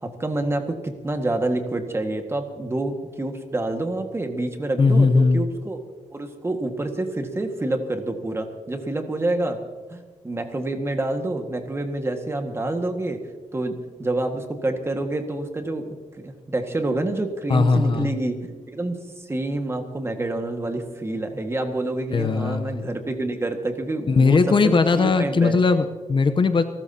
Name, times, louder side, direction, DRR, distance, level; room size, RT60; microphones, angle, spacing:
voice 1, 0.0-5.8 6.1-9.6 9.9-13.2 13.5-18.4 18.7-25.6, right 2 dB, 20° right, 5 dB, 1.7 m, -27 dB
voice 2, 4.8-5.5 17.5-18.1 22.1-22.9 24.1-26.6, left 4 dB, 40° left, 9 dB, 0.8 m, -19 dB
29.5 x 13.5 x 2.8 m, 1.4 s
wide cardioid pair, 125°, 12 cm